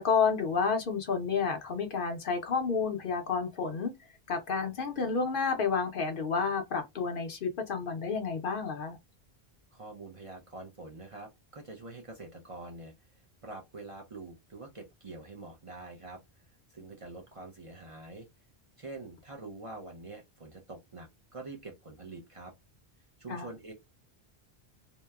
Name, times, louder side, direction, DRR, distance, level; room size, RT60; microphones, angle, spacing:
voice 1, 0.0-3.9 4.3-9.0 23.3-23.5, left 5 dB, 60° left, 0.8 m, -30 dB
voice 2, 9.7-16.4 16.7-18.3 18.8-22.5 23.2-23.7, right 2 dB, 40° right, 0.6 m, -46 dB
2.8 x 2.1 x 2.3 m
omnidirectional pair, 1.1 m